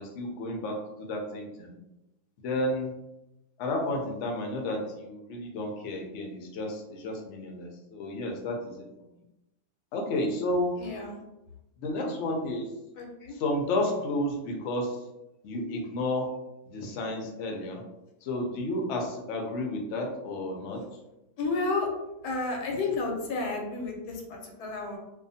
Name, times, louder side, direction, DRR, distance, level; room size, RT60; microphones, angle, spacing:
voice 1, 0.0-1.8 2.4-2.9 3.6-8.8 9.9-10.7 11.8-12.6 13.4-15.0 15.4-16.3 16.7-17.8 18.2-20.8, left 1 dB, 65° left, 1 dB, 0.8 m, -31 dB
voice 2, 10.8-11.2 13.0-13.4 21.4-21.9 22.2-25.0, left 3 dB, 85° left, 1 dB, 1.2 m, -31 dB
2.5 x 2.4 x 2.6 m, 0.94 s
omnidirectional pair, 1.6 m